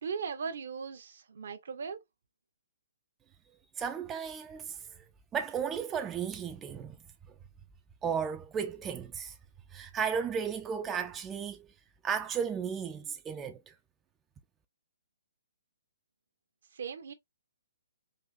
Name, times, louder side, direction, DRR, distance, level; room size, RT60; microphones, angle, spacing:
voice 1, 0.0-2.0 16.7-17.1, right 6 dB, 65° right, 0.7 m, -38 dB
voice 2, 3.8-5.0 5.3-7.0 8.0-9.4 9.7-11.7 12.0-13.7, right 7 dB, 15° right, 0.4 m, -34 dB
3.9 x 2.5 x 2.4 m
figure-of-eight pair, 130°, 0 cm